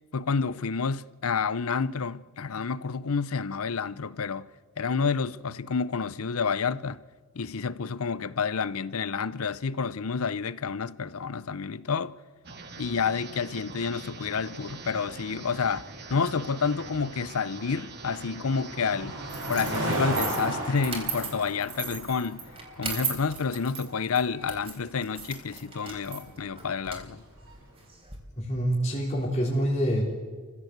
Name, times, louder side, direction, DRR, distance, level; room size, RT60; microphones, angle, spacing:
voice 1, 0.1-4.5 4.8-7.0 7.3-12.1 12.8-15.8 16.1-19.2 19.5-22.4 22.8-27.2, left 5 dB, 70° left, 0.7 m, -29 dB
sound 1, 12.4-19.8, right 4 dB, 50° right, 2.2 m, -44 dB
sound 2, 14.1-27.7, right 1 dB, 65° right, 4.8 m, -37 dB
sound 3, 19.3-28.2, right 5 dB, 30° right, 3.9 m, -38 dB
voice 2, 28.4-30.1, equal, 30° left, 3.8 m, -26 dB
27.0 x 15.5 x 8.1 m
head